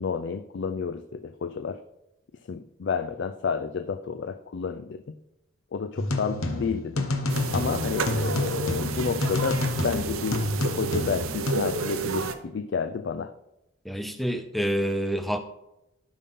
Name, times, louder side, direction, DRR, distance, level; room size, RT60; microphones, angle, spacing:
voice 1, 0.0-1.8 2.5-5.0 5.7-7.1 7.5-10.5 10.8-13.3, left 5 dB, 55° left, 9 dB, 0.4 m, -30 dB
sound 1, 6.0-11.5, left 2 dB, 85° left, 1.1 m, -29 dB
sound 2, 7.3-12.3, right 4 dB, 85° right, 0.7 m, -31 dB
voice 2, 13.9-15.4, equal, ahead, 8 dB, 0.5 m, -27 dB
12.5 x 5.4 x 3.6 m, 0.89 s
head